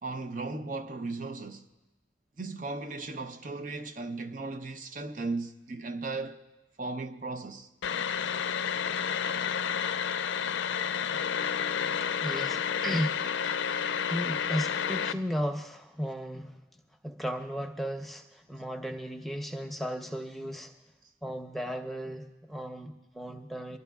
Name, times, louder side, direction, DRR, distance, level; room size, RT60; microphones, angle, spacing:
voice 1, 0.0-1.6 2.4-6.4 6.8-7.7, right 3 dB, 45° right, 0.6 m, -36 dB
sound 1, 7.8-15.1, left 7 dB, 90° left, 0.4 m, -30 dB
voice 2, 12.2-13.7 14.1-16.6 17.0-20.7 21.2-23.8, equal, ahead, 0.7 m, -35 dB
27.0 x 11.5 x 2.3 m
head